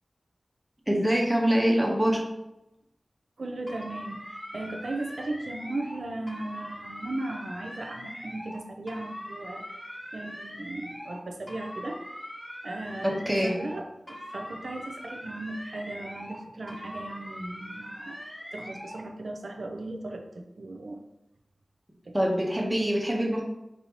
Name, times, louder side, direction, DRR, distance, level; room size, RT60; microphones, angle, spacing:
voice 1, 0.9-2.2 13.0-13.5 22.1-23.4, equal, 15° right, -1 dB, 1.0 m, -24 dB
voice 2, 3.4-9.6 10.1-12.0 12.6-18.2 18.5-21.0 22.1-22.2, right 2 dB, 85° right, 4 dB, 0.5 m, -37 dB
sound 1, 3.7-6.0 6.3-8.6 8.9-11.2 11.5-13.8 14.1-16.4 16.7-19.0, equal, 30° left, 1.5 m, -41 dB
5.4 x 2.7 x 2.9 m, 0.89 s
wide cardioid pair, 80°, 0 cm